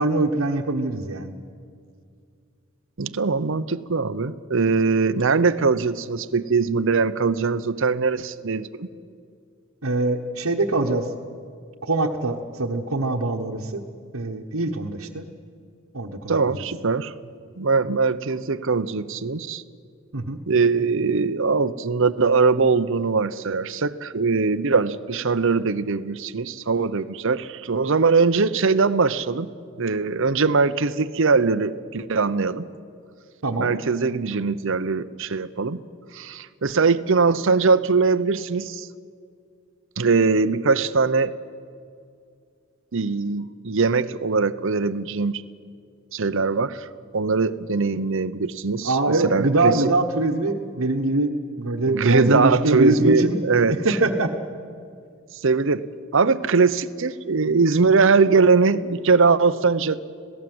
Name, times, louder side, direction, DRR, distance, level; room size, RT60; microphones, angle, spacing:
voice 1, 0.0-1.3 9.8-11.1 11.8-13.8 14.1-15.3 15.9-16.6 20.1-20.4 33.4-33.7 48.8-53.4 53.8-54.3, right 2 dB, 85° right, 0 dB, 1.3 m, -23 dB
voice 2, 3.0-8.9 16.3-17.1 17.6-19.6 20.5-29.5 29.8-32.7 33.6-35.8 36.1-38.9 40.0-41.4 42.9-45.4 46.1-46.9 47.1-49.8 51.9-54.0 55.4-55.8 56.1-60.1, right 4 dB, 65° right, 14 dB, 0.8 m, -21 dB
26.5 x 17.5 x 7.9 m, 2.3 s
head